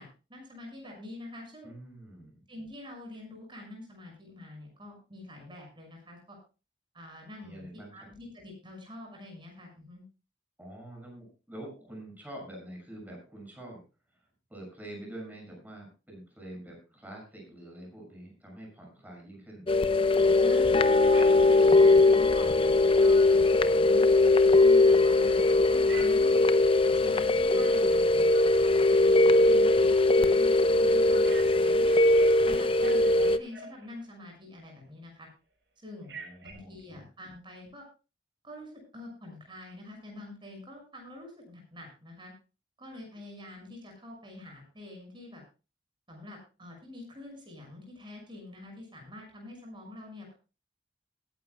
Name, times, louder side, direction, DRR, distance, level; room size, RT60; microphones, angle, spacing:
voice 1, 0.0-1.7 2.5-6.4 6.9-7.6 7.9-10.0 20.4-24.0 24.6-26.5 26.9-29.2 29.5-31.9 32.5-35.3 35.8-37.9 38.4-42.3 42.8-45.4 46.1-50.4, left 1 dB, 30° right, 1 dB, 6.2 m, -46 dB
voice 2, 1.6-2.4 7.4-8.1 10.6-13.8 14.5-19.7 29.2-29.9 36.1-36.7, right 1 dB, 10° right, 0 dB, 6.5 m, -46 dB
sound 1, 19.7-33.4, left 2 dB, 30° left, 0.7 m, -21 dB
Telephone, 25.9-26.4 31.2-34.1 36.0-36.5, right 4 dB, 80° right, 5.5 m, -46 dB
21.0 x 11.0 x 2.3 m, 0.31 s
head